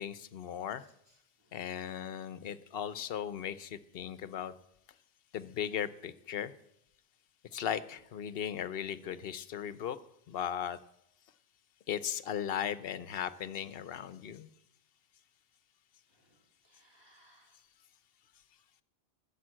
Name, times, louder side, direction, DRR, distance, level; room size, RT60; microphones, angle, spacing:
voice 1, 0.0-0.8 1.5-4.5 5.3-6.5 7.5-10.0 10.3-10.8 11.9-14.5, left 9 dB, 65° left, 16 dB, 0.9 m, -37 dB
voice 2, 0.8-1.6 16.1-17.6, right 1 dB, 25° right, -1 dB, 3.7 m, -67 dB
14.0 x 7.4 x 7.5 m, 0.78 s
omnidirectional pair, 1.1 m